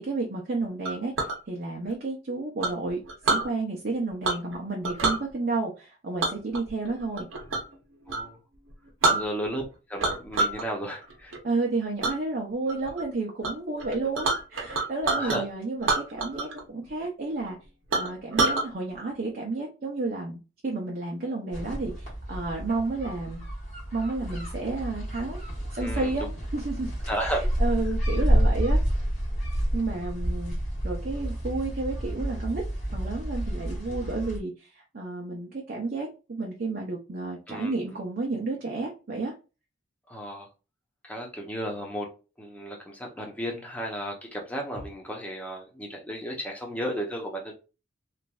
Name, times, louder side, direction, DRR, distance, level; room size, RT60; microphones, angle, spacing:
voice 1, 0.0-3.0 3.3-7.3 9.1-9.2 11.4-17.6 18.0-20.4 20.6-23.4 23.9-25.4 25.7-26.3 26.5-26.9 27.2-28.8 29.7-30.5 30.8-32.6 32.9-39.3, right 3 dB, 50° right, 0.6 m, -31 dB
Chink clink, 0.8-1.4 2.6-3.5 4.2-4.5 4.8-5.2 6.2-7.7 8.1-8.3 8.7-8.8 9.0-9.6 10.0-10.6 11.0-11.4 12.0-12.2 12.7-13.0 13.4-13.5 13.8-15.4 15.8-16.6 16.9-17.0 17.4-17.5 17.9-18.6, right 3 dB, 85° right, 0.7 m, -27 dB
voice 2, 8.1-8.4 9.1-9.6 9.9-11.3 15.1-15.4 25.8-26.1 27.1-27.5 37.5-37.7 40.1-40.5 41.0-42.1 42.4-47.5, equal, 5° left, 0.7 m, -33 dB
sound 1, 21.5-34.4, equal, 40° left, 1.4 m, -29 dB
3.1 x 2.5 x 2.3 m
head